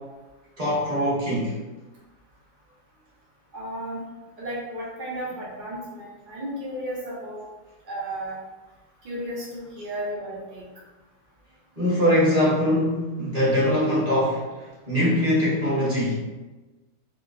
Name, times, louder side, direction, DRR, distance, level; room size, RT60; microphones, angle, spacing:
voice 1, 0.6-1.5 11.8-14.4 14.9-16.2, equal, 25° right, -8 dB, 0.9 m, -22 dB
voice 2, 3.5-4.0 4.4-7.4 7.8-8.4 9.0-10.6, right 1 dB, 80° right, -7 dB, 0.4 m, -33 dB
4.1 x 2.0 x 2.5 m, 1.2 s
omnidirectional pair, 1.8 m